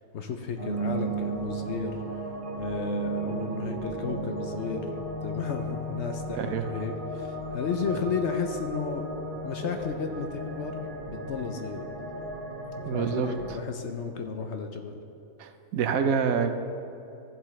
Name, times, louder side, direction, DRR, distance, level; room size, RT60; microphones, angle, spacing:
voice 1, 0.0-2.2 2.6-4.9 5.2-9.1 9.4-10.8 11.1-11.8 12.9-15.0, left 5 dB, 60° left, 5 dB, 0.8 m, -33 dB
sound 1, 0.6-13.5, right 2 dB, 40° right, 0.9 m, -35 dB
voice 2, 6.3-6.7 12.9-13.6 15.4-16.5, right 6 dB, 75° right, 8 dB, 1.1 m, -27 dB
14.5 x 7.5 x 3.2 m, 2.9 s
omnidirectional pair, 1.5 m